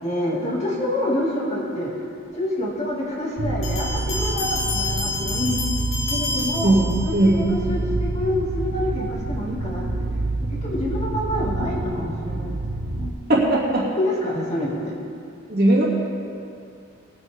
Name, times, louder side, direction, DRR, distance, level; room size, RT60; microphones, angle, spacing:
voice 1, 0.0-1.9 2.3-5.6 6.1-9.9 10.5-12.6 12.9-13.1 14.0-14.9, left 1 dB, 30° left, -5 dB, 2.5 m, -27 dB
sound 1, 3.4-13.1, right 2 dB, 85° right, 0.8 m, -28 dB
sound 2, 3.6-7.4, left 2 dB, 60° left, 2.9 m, -29 dB
voice 2, 6.6-7.5 13.3-13.9 15.5-15.8, right 1 dB, 45° right, -5 dB, 2.6 m, -18 dB
21.0 x 9.1 x 3.7 m, 2.5 s
head